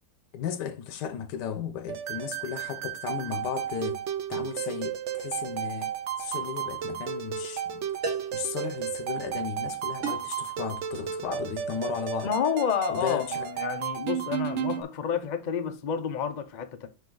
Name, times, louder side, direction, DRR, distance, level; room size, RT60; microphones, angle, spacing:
voice 1, 0.3-4.0 4.3-7.9 8.3-12.3 12.9-13.5, left 8 dB, 85° left, 1.4 m, -35 dB
sound 1, 1.9-14.8, right 9 dB, 65° right, 0.7 m, -33 dB
sound 2, 6.4-6.6 8.0-8.5 10.0-10.4, right 3 dB, 50° right, 1.6 m, -35 dB
voice 2, 12.2-16.9, left 7 dB, 65° left, 0.4 m, -30 dB
5.5 x 5.3 x 3.8 m
omnidirectional pair, 1.8 m